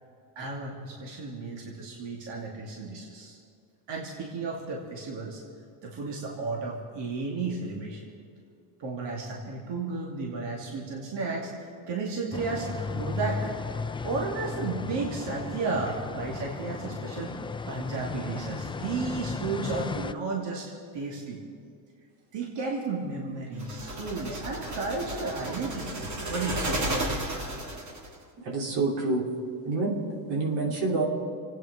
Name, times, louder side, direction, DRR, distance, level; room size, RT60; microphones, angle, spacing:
voice 1, 0.4-3.4 3.9-5.4 5.8-8.1 8.8-13.5 14.0-21.4 22.3-26.8, right 3 dB, 65° right, -2 dB, 2.5 m, -33 dB
sound 1, 12.3-20.1, left 4 dB, 10° left, 0.4 m, -35 dB
sound 2, 23.6-28.2, right 1 dB, 35° right, 2.4 m, -33 dB
voice 2, 28.4-29.3 29.6-30.0 30.3-31.0, right 3 dB, 80° right, -1 dB, 3.2 m, -27 dB
25.5 x 9.3 x 4.9 m, 2.4 s
supercardioid pair, 90°, 47 cm